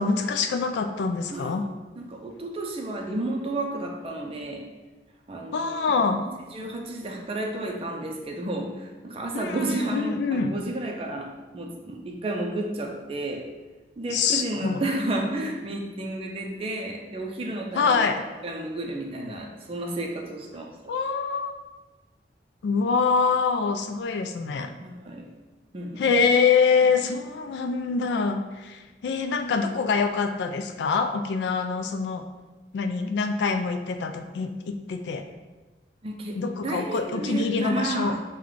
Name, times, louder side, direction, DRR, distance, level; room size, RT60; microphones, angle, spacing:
voice 1, 0.0-1.7 5.5-6.2 9.3-10.6 14.1-14.8 17.7-18.2 20.9-21.6 22.6-24.7 26.0-32.3 32.7-35.3 36.3-38.2, left 5 dB, 75° left, 7 dB, 0.3 m, -25 dB
voice 2, 2.0-4.7 5.3-5.9 6.3-13.5 14.0-18.1 18.4-20.8 24.8-25.3 25.7-26.2 36.0-38.2, right 2 dB, 30° right, 1 dB, 0.4 m, -32 dB
4.7 x 2.2 x 3.9 m, 1.2 s
head